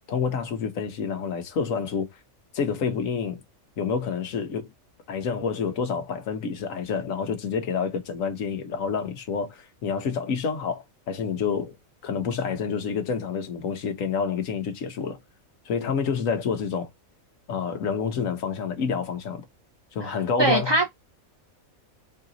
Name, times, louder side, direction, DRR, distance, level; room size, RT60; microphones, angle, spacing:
voice 1, 0.0-2.1 2.5-3.4 3.8-4.7 5.1-11.8 12.0-15.2 15.6-16.9 17.5-19.4 19.9-20.8, left 6 dB, 70° left, 1.3 m, -28 dB
voice 2, 20.0-20.9, right 2 dB, 40° right, 0.4 m, -23 dB
3.9 x 2.9 x 3.8 m
omnidirectional pair, 1.5 m